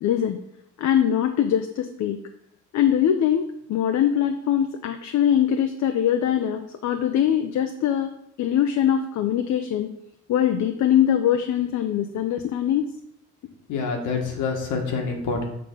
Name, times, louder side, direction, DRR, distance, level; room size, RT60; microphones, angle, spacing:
voice 1, 0.0-0.4 0.8-2.2 2.7-8.1 8.4-9.9 10.3-12.8, left 10 dB, 65° left, 7 dB, 0.6 m, -22 dB
voice 2, 13.7-15.4, left 4 dB, 85° left, 2 dB, 1.5 m, -26 dB
6.7 x 3.8 x 5.3 m, 0.78 s
cardioid pair, 90°, 30 cm